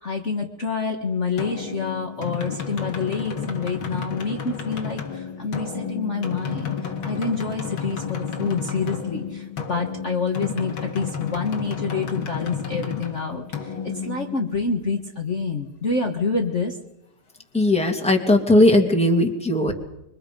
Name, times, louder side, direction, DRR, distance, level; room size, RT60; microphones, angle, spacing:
voice 1, 0.0-16.8, left 4 dB, 35° left, 2 dB, 1.7 m, -27 dB
sound 1, 1.4-14.9, left 6 dB, 70° left, 2.8 m, -32 dB
voice 2, 17.5-19.7, left 1 dB, 5° left, 3 dB, 2.3 m, -18 dB
26.0 x 24.5 x 5.4 m, 0.86 s
omnidirectional pair, 2.3 m